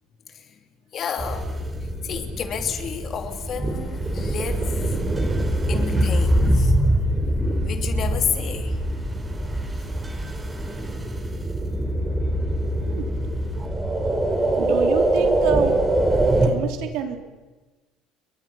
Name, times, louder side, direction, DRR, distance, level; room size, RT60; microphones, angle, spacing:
voice 1, 0.9-1.5 2.0-4.8 5.7-6.8 7.7-8.8, left 7 dB, 45° left, 2.9 m, -30 dB
sound 1, 1.2-16.5, right 1 dB, 15° right, 5.0 m, -23 dB
voice 2, 14.6-15.8 16.4-17.2, right 8 dB, 75° right, 3.6 m, -27 dB
29.5 x 23.5 x 5.9 m
cardioid pair, 110°, 0 cm